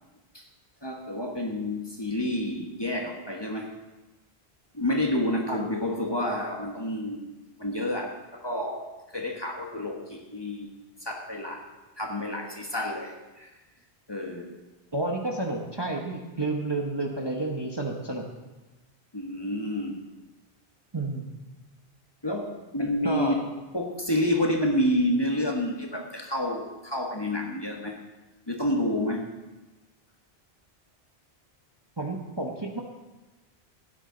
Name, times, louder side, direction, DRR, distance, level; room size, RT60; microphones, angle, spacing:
voice 1, 0.8-3.7 4.7-7.2 7.6-8.9 9.1-10.7 11.0-11.6 12.0-13.5 14.1-14.5 19.1-20.0 22.2-23.4 23.7-28.0 28.5-29.2, left 1 dB, 25° left, 0 dB, 1.4 m, -29 dB
voice 2, 14.9-18.2 20.9-21.3 23.0-23.3 32.0-32.8, right 2 dB, 25° right, 0 dB, 1.0 m, -30 dB
16.0 x 10.0 x 3.9 m, 1.1 s
omnidirectional pair, 1.1 m